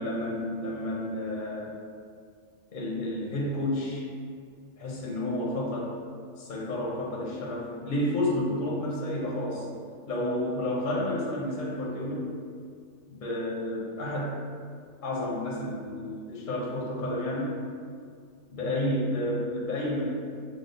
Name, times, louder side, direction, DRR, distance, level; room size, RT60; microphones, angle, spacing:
voice 1, 0.0-1.7 2.7-4.1 4.8-5.9 6.4-9.7 10.1-12.3 13.1-14.4 15.0-17.5 18.5-20.0, left 1 dB, 50° left, -4 dB, 0.7 m, -30 dB
6.1 x 2.0 x 3.9 m, 2.1 s
omnidirectional pair, 1.5 m